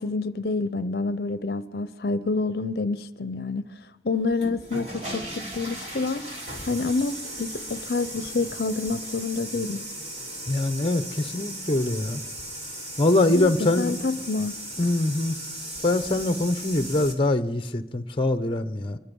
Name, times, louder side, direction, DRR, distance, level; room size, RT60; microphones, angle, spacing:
voice 1, 0.0-3.6 4.0-6.3 6.7-9.8 13.3-14.6, left 3 dB, 65° left, 0.6 m, -28 dB
sound 1, 4.2-17.1, right 1 dB, 40° right, 3.3 m, -37 dB
voice 2, 10.5-12.2 13.0-13.9 14.8-15.4 15.8-19.0, left 2 dB, 30° left, 0.9 m, -23 dB
25.5 x 22.5 x 5.4 m
head